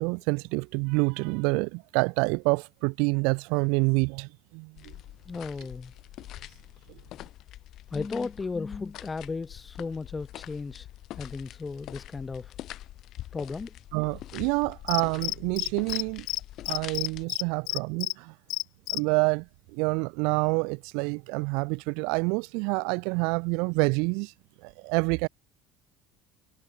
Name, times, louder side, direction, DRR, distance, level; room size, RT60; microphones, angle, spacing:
voice 1, 0.0-4.3 4.5-4.7 13.9-16.2 16.7-18.3 18.9-19.4 19.7-24.3 24.6-25.3, right 33 dB, 70° right, 1.4 m, -27 dB
sound 1, 4.8-17.2, left 14 dB, 45° left, 4.7 m, -45 dB
voice 2, 5.3-5.9 7.9-10.9 11.2-12.6 13.3-13.7, left 4 dB, 15° left, 0.8 m, -35 dB
Cricket, 14.9-16.0 16.3-16.4 16.6-18.1 18.5-19.0, left 23 dB, 60° left, 0.7 m, -29 dB
cardioid pair, 170°, 0 cm